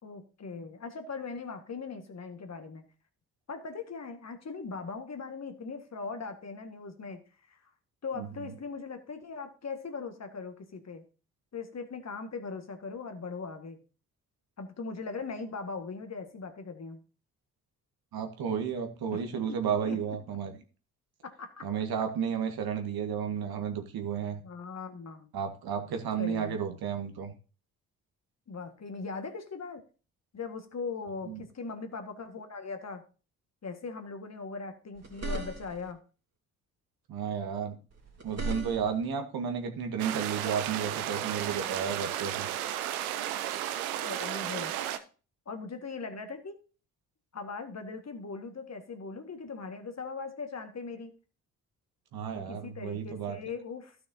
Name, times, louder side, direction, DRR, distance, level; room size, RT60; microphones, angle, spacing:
voice 1, 0.0-2.8 3.5-7.2 7.5-7.6 8.0-11.0 11.5-13.8 14.6-17.0 19.1-19.2 19.8-20.2 21.2-21.7 24.4-25.3 26.2-26.6 28.5-29.8 30.3-33.0 33.6-36.0 44.0-44.7 45.5-46.6 47.3-51.1 52.3-54.0, left 4 dB, 40° left, 6 dB, 1.8 m, -40 dB
voice 2, 8.2-8.5 18.1-20.5 21.6-24.4 25.3-27.3 31.3-31.4 37.1-37.8 38.2-42.5 52.1-53.4, right 7 dB, 55° right, 5 dB, 1.7 m, -32 dB
sound 1, 35.0-35.9 37.9-39.1, right 2 dB, 35° right, 3.1 m, -37 dB
sound 2, 40.0-45.0, right 11 dB, 80° right, 0.7 m, -33 dB
15.5 x 6.1 x 2.8 m, 0.36 s
hypercardioid pair, 40°, 42 cm